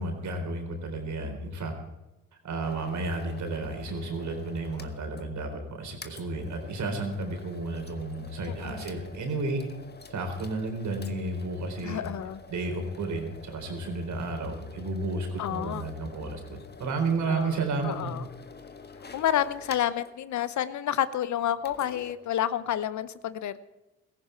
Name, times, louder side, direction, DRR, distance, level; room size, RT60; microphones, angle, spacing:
voice 1, 0.0-1.7 2.4-9.6 10.1-12.0 12.5-18.1, right 3 dB, 60° right, 4 dB, 4.1 m, -32 dB
sound 1, 2.6-5.3 5.6-5.7 6.0-20.1 21.6-22.2, left 4 dB, 30° left, 1.6 m, -48 dB
voice 2, 8.5-8.8 11.8-12.4 15.4-15.9 17.3-17.6 17.8-18.2 19.1-23.6, left 11 dB, 55° left, 15 dB, 0.9 m, -29 dB
16.5 x 15.0 x 4.6 m, 1.0 s
hypercardioid pair, 55°, 34 cm